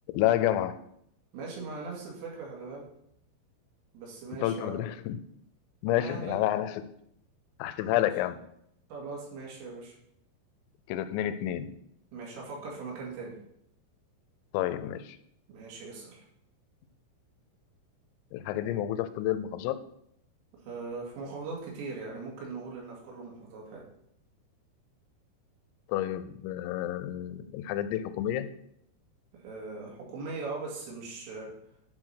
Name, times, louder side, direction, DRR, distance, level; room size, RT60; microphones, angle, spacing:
voice 1, 0.1-0.8 4.4-5.2 5.8-7.0 7.6-8.4 10.9-11.8 14.5-15.2 18.3-19.8 25.9-28.5, left 12 dB, 85° left, 12 dB, 3.3 m, -29 dB
voice 2, 1.3-2.9 3.9-4.8 5.9-6.4 7.8-8.1 8.9-10.0 12.1-13.3 15.5-16.2 20.5-23.9 29.3-31.5, right 4 dB, 75° right, -2 dB, 4.8 m, -40 dB
10.5 x 4.9 x 5.7 m, 0.74 s
omnidirectional pair, 5.9 m